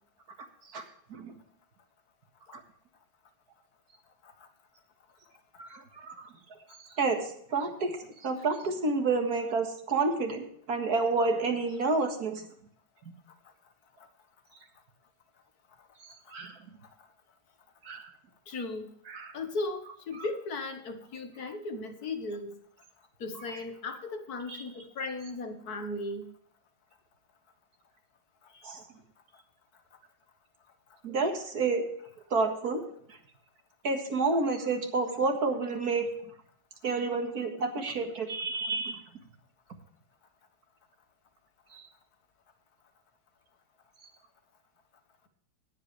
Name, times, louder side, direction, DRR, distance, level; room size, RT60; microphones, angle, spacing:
voice 1, 5.6-6.3 7.0-7.9 8.2-12.5 16.3-16.6 17.8-18.1 19.1-19.3 24.5-24.6 28.6-28.8 31.0-31.9 32.3-32.8 33.8-36.1 36.8-39.0 41.7-41.8, right 3 dB, 55° right, 4 dB, 2.1 m, -29 dB
voice 2, 18.5-18.9 19.3-22.5 23.2-26.3 28.5-28.6, left 2 dB, 55° left, 7 dB, 1.8 m, -36 dB
19.5 x 7.8 x 3.3 m, 0.66 s
omnidirectional pair, 2.0 m